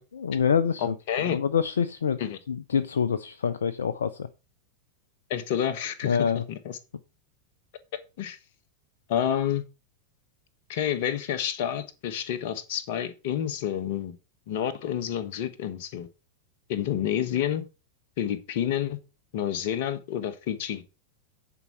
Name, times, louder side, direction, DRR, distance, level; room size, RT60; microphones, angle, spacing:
voice 1, 0.1-0.9 1.3-2.2 2.5-4.3 6.0-6.4, left 7 dB, 70° left, 14 dB, 0.6 m, -26 dB
voice 2, 0.8-1.4 2.2-2.4 5.3-6.2 6.5-6.8 8.2-8.4 9.1-9.6 10.7-14.1 14.5-16.1 16.7-17.6 18.2-19.0 19.3-20.8, left 10 dB, 50° left, 11 dB, 1.3 m, -29 dB
9.7 x 4.9 x 5.8 m, 0.30 s
figure-of-eight pair, 90°, 0 cm